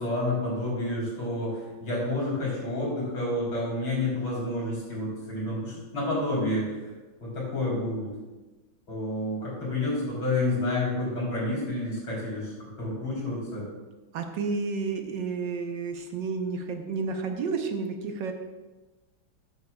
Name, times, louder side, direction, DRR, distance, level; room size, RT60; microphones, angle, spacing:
voice 1, 0.0-6.7 7.2-8.1 8.9-12.5 12.8-13.7, left 2 dB, 80° left, -5 dB, 4.6 m, -29 dB
voice 2, 14.1-18.3, right 4 dB, 70° right, 4 dB, 1.5 m, -31 dB
14.0 x 9.3 x 2.4 m, 1.2 s
omnidirectional pair, 2.2 m